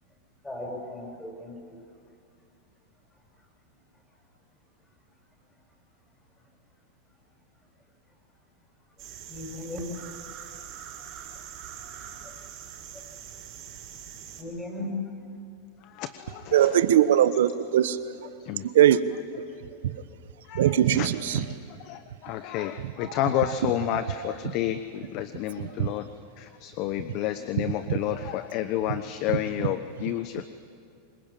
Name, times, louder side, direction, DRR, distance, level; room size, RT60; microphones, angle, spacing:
voice 1, 0.4-1.8 9.3-9.8 12.2-12.3 14.4-14.9, left 1 dB, 10° left, 0 dB, 7.2 m, -37 dB
sound 1, 9.0-14.4, right 9 dB, 45° right, 5.5 m, -43 dB
voice 2, 15.8-16.8 18.4-18.6 20.5-26.1 26.4-30.5, left 12 dB, 50° left, 11 dB, 1.0 m, -31 dB
voice 3, 16.5-18.0 18.7-19.0 20.5-21.4 25.8-25.9, right 11 dB, 75° right, 13 dB, 1.1 m, -20 dB
25.5 x 21.5 x 8.9 m, 2.4 s
hypercardioid pair, 110°, 0 cm